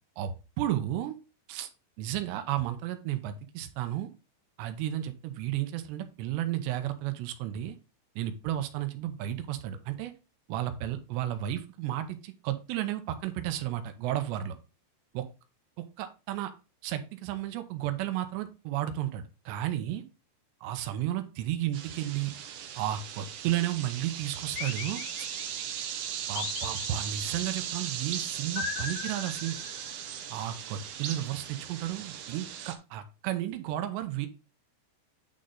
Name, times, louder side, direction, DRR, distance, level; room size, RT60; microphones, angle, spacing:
voice 1, 0.2-1.2 1.5-1.7 2.0-4.1 4.6-7.8 8.2-10.1 10.5-14.6 15.1-15.3 16.0-16.5 16.8-20.0 20.6-22.4 22.8-25.3 26.3-29.6 30.3-34.3, right 12 dB, 85° right, 8 dB, 3.0 m, -33 dB
sound 1, 21.7-32.8, right 9 dB, 70° right, 2.5 m, -38 dB
sound 2, 24.6-25.7 26.4-27.5 28.6-30.0, left 7 dB, 80° left, 1.8 m, -38 dB
10.5 x 3.8 x 3.9 m, 0.31 s
omnidirectional pair, 4.9 m